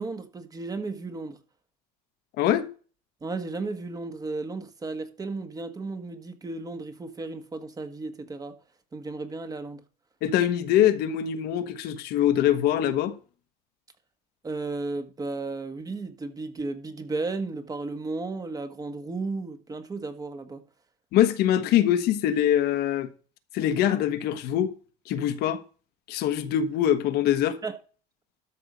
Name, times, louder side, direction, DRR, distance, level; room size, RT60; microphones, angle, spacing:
voice 1, 0.0-1.4 3.2-8.5 8.9-9.8 14.4-20.6 27.6-27.8, right 3 dB, 20° right, 1.5 m, -34 dB
voice 2, 10.2-13.1 21.1-23.1 23.5-24.7 25.1-25.6 26.1-27.6, left 11 dB, 65° left, 1.2 m, -23 dB
13.0 x 5.5 x 5.1 m
cardioid pair, 120°, 17 cm